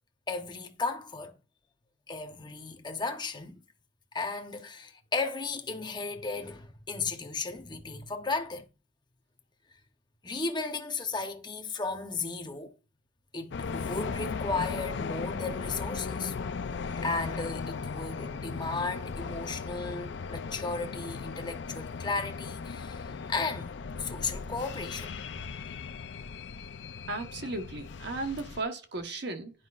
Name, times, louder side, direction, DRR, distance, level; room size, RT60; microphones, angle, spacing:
voice 1, 0.3-1.3 2.1-3.6 4.1-8.7 10.2-12.7 13.3-16.3 16.9-23.7 24.0-25.4, left 3 dB, 25° left, 0.9 m, -35 dB
sound 1, 13.5-28.6, left 5 dB, 65° left, 0.5 m, -37 dB
voice 2, 27.1-29.5, right 2 dB, 65° right, 1.1 m, -35 dB
10.0 x 5.2 x 2.4 m
head